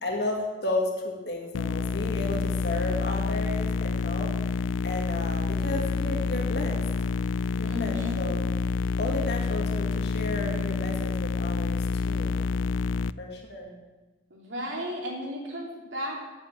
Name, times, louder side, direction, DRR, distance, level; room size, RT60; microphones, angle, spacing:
voice 1, 0.0-4.3 4.8-6.8 7.6-8.5 9.0-12.5 13.2-13.7, left 2 dB, 60° left, 0 dB, 1.8 m, -33 dB
sound 1, 1.5-13.1, left 4 dB, 90° left, 0.3 m, -28 dB
voice 2, 7.6-8.2 14.3-16.2, left 1 dB, 85° right, -1 dB, 2.9 m, -34 dB
8.9 x 8.1 x 7.6 m, 1.2 s
head